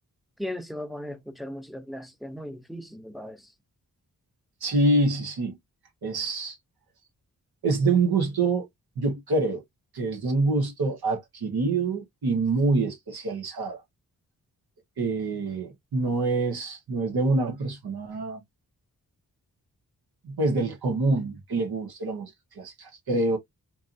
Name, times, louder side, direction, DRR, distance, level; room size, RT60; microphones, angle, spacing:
voice 1, 0.4-3.5, left 1 dB, ahead, 0.7 m, -37 dB
voice 2, 4.6-5.6 6.0-6.5 7.6-8.7 9.0-9.6 9.9-13.8 15.0-18.4 20.2-22.3 22.6-23.4, right 3 dB, 90° right, 1.4 m, -26 dB
4.6 x 2.8 x 2.6 m
wide cardioid pair, 100°, 36 cm